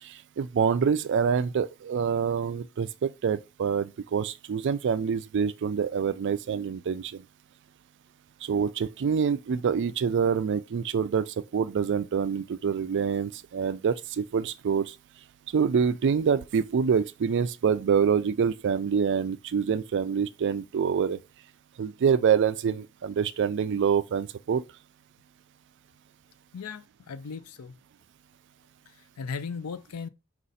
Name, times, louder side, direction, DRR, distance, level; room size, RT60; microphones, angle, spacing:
voice 1, 0.0-7.2 8.4-15.0 15.5-21.2 21.8-24.6, right 6 dB, 55° right, 0.3 m, -26 dB
voice 2, 26.5-27.8 28.9-30.1, left 5 dB, 80° left, 0.5 m, -37 dB
5.1 x 2.5 x 4.1 m
head